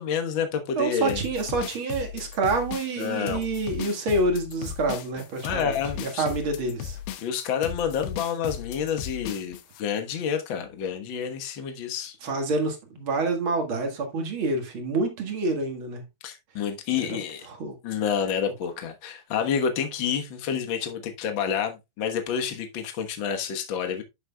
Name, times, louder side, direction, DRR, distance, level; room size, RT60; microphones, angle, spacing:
voice 1, 0.0-1.2 3.0-3.4 5.4-6.2 7.2-12.2 16.2-17.4 17.8-24.0, left 7 dB, 70° left, 1.1 m, -29 dB
voice 2, 0.8-5.7 6.0-7.0 12.2-16.0 17.1-17.2 17.6-17.8, right 3 dB, 45° right, 1.9 m, -27 dB
sound 1, 1.1-9.8, left 9 dB, 90° left, 2.8 m, -37 dB
11.0 x 6.4 x 2.3 m
omnidirectional pair, 4.1 m